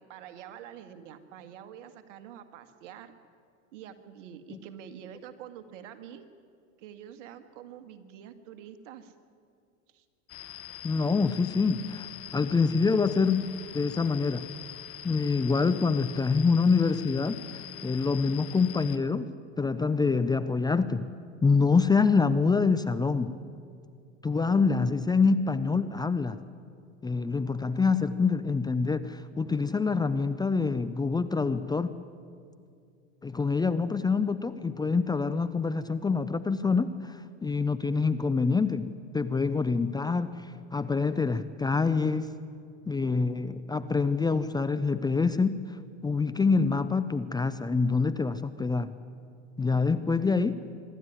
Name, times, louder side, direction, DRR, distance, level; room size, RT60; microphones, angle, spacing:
voice 1, 0.0-3.1 3.7-6.3 6.8-9.1 9.9-10.1, right 9 dB, 70° right, 9 dB, 1.9 m, -46 dB
sound 1, 10.3-19.0, left 12 dB, 35° left, 1.0 m, -44 dB
voice 2, 10.8-14.5 15.0-19.3 19.6-21.1 21.4-23.4 24.2-26.4 27.0-31.9 33.2-38.9 39.1-42.3 42.9-45.8 46.0-48.9 49.6-50.5, left 4 dB, 10° left, 12 dB, 0.6 m, -26 dB
25.0 x 12.5 x 9.5 m, 2.3 s
hypercardioid pair, 100°, 38 cm